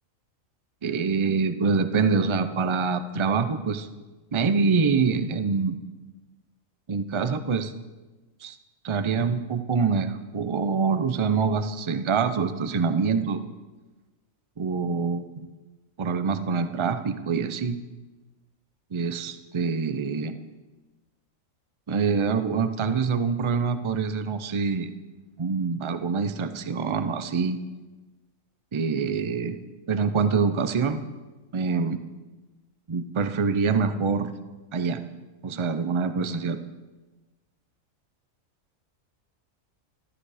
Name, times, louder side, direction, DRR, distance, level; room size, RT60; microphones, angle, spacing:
voice 1, 0.8-3.9 4.3-5.8 6.9-7.7 8.4-8.5 8.8-13.4 14.6-15.5 16.0-17.8 18.9-20.3 21.9-24.9 25.4-27.6 28.7-29.6 29.9-31.0 31.5-32.0 32.9-34.3 34.7-35.0 35.4-36.6, right 5 dB, 35° right, 10 dB, 0.5 m, -25 dB
13.0 x 12.0 x 4.9 m, 1.2 s
omnidirectional pair, 1.4 m